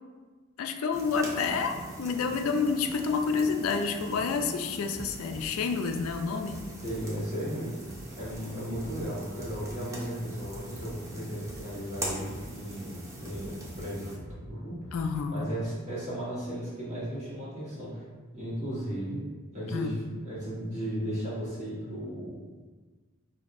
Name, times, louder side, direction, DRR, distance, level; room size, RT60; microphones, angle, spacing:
voice 1, 0.6-6.6 14.9-15.5 19.7-20.0, left 5 dB, 75° left, 5 dB, 0.4 m, -29 dB
sound 1, 0.9-14.2, right 1 dB, 15° right, 0.7 m, -42 dB
sound 2, 4.9-7.1 7.3-7.5 7.8-9.8 10.0-12.9 13.3-15.8, equal, 30° left, 1.0 m, -47 dB
voice 2, 6.8-7.8 8.1-14.8 15.3-18.0 18.3-19.3 19.5-22.4, equal, 35° right, -8 dB, 1.3 m, -35 dB
5.1 x 2.7 x 2.5 m, 1.4 s
head